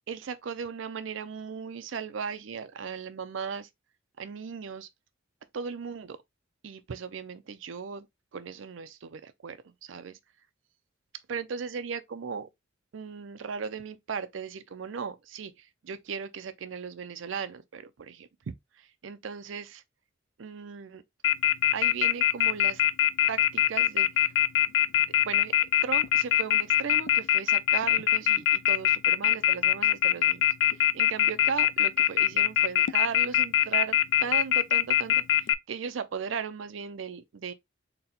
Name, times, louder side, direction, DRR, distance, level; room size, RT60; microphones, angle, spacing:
voice 1, 0.1-3.7 4.2-4.9 5.5-6.2 6.6-8.1 8.3-10.2 11.3-12.5 12.9-19.8 20.4-21.0 21.7-22.8 23.3-24.3 25.1-25.6 25.8-37.5, right 6 dB, 75° right, 0.5 m, -37 dB
Telephone, 21.2-35.5, left 12 dB, 65° left, 0.3 m, -22 dB
4.0 x 2.2 x 4.1 m
head